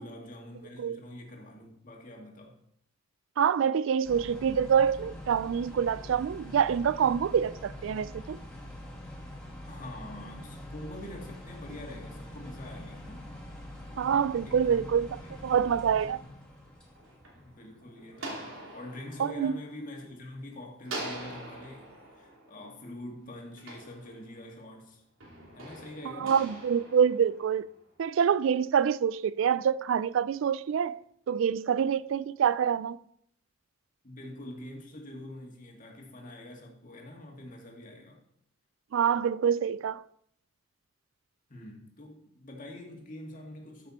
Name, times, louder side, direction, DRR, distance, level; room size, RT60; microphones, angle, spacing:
voice 1, 0.0-2.6 9.7-13.3 13.9-14.0 14.4-15.6 17.4-25.0 25.5-26.4 34.0-38.2 41.5-43.9, left 1 dB, 40° left, 2.2 m, -45 dB
voice 2, 3.4-8.4 14.0-16.2 19.2-19.6 26.2-27.7 28.0-31.0 31.3-33.0 38.9-40.0, right 7 dB, 70° right, 0.3 m, -26 dB
sound 1, 4.0-18.2 18.4-18.7 19.3-19.5 20.5-20.6 21.1-21.9 22.2-22.3, left 1 dB, 5° left, 2.3 m, -45 dB
sound 2, 16.7-20.4 20.8-24.6 25.2-27.9, right 2 dB, 90° right, 2.9 m, -44 dB
13.5 x 6.2 x 4.3 m
head